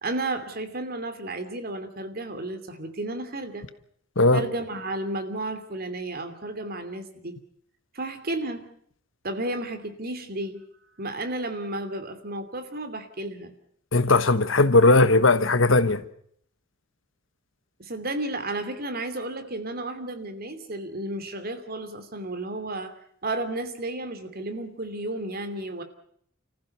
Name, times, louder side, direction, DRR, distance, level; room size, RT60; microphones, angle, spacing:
voice 1, 0.0-3.6 4.3-7.4 7.9-8.7 9.2-10.6 11.0-13.5 17.8-23.0 23.2-25.8, right 2 dB, 50° right, 2.8 m, -32 dB
voice 2, 13.9-16.0, left 2 dB, 70° left, 1.4 m, -18 dB
30.0 x 15.0 x 6.8 m
head